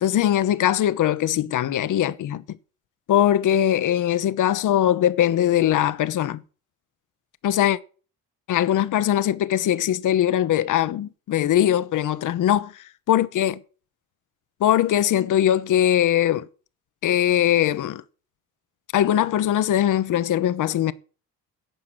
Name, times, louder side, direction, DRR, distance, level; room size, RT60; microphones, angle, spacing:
voice 1, 0.0-2.4 3.1-6.4 7.4-7.8 8.5-13.6 14.6-16.5 17.0-18.0 18.9-20.9, left 11 dB, 55° left, 0.9 m, -21 dB
11.5 x 7.4 x 6.3 m
supercardioid pair, 80°, 37 cm